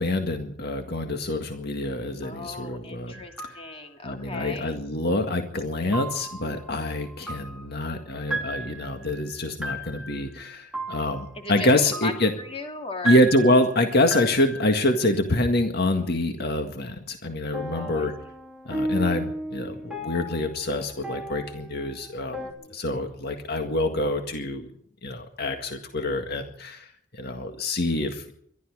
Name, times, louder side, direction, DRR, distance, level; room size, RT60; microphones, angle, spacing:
voice 1, 0.0-3.1 4.0-12.3 13.0-18.1 18.7-22.4 22.7-24.7 25.0-26.9 27.1-28.3, left 1 dB, 55° left, 5 dB, 1.9 m, -26 dB
voice 2, 2.2-4.8 11.3-13.2 17.7-18.1 22.4-22.8, left 2 dB, 30° left, 4 dB, 2.8 m, -37 dB
sound 1, 3.1-3.8 5.9-15.2 17.5-22.5, right 1 dB, 5° right, 3.1 m, -35 dB
23.0 x 12.5 x 4.9 m, 0.66 s
head